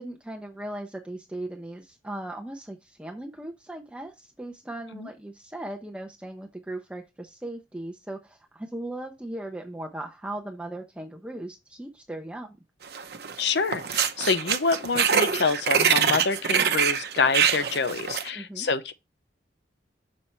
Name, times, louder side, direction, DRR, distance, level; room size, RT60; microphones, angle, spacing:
voice 1, 0.0-12.6 18.3-18.7, right 1 dB, 5° right, 0.6 m, -38 dB
sound 1, 12.9-13.4 13.7-18.3, right 7 dB, 60° right, 0.8 m, -24 dB
voice 2, 13.4-18.9, left 4 dB, 70° left, 0.7 m, -27 dB
6.4 x 4.2 x 4.4 m
head